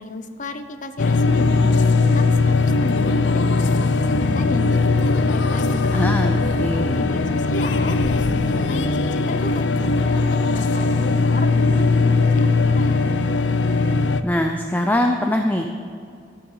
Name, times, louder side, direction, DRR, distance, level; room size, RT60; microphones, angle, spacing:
voice 1, 0.0-4.6 5.2-6.1 6.4-9.7 10.0-13.0, left 2 dB, 45° left, 9 dB, 0.7 m, -33 dB
sound 1, 1.0-14.2, left 3 dB, 85° left, 0.5 m, -19 dB
voice 2, 5.9-6.9 14.2-15.7, left 1 dB, 10° left, 4 dB, 0.5 m, -22 dB
14.0 x 8.8 x 5.5 m, 2.3 s
head